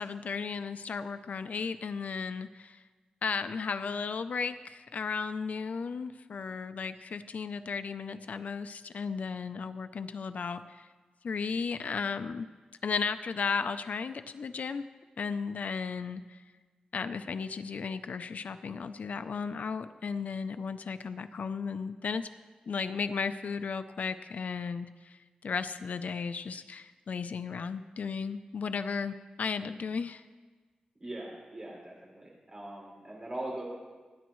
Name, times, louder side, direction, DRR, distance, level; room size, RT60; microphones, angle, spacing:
voice 1, 0.0-2.8 3.2-10.9 11.2-12.5 12.8-14.8 15.2-16.4 16.9-22.3 22.7-30.2, left 5 dB, 70° left, 10 dB, 0.5 m, -35 dB
voice 2, 31.0-33.6, right 1 dB, 30° right, -3 dB, 5.7 m, -41 dB
29.0 x 10.5 x 3.1 m, 1.4 s
wide cardioid pair, 115°, 3 cm